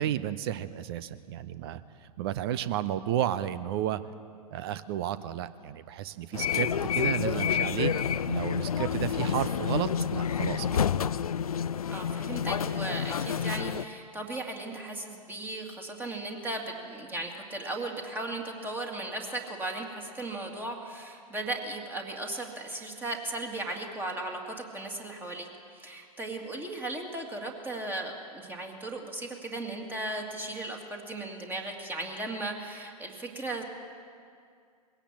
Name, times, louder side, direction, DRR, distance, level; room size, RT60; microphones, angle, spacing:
voice 1, 0.0-1.8 2.2-4.0 4.5-7.9 8.3-10.8, right 11 dB, 40° right, 15 dB, 0.7 m, -32 dB
sound 1, 6.3-13.8, left 8 dB, 65° left, 0.5 m, -29 dB
voice 2, 11.9-33.6, right 2 dB, 10° right, 2 dB, 2.2 m, -36 dB
21.0 x 17.0 x 7.4 m, 2.2 s
figure-of-eight pair, 105°, 20 cm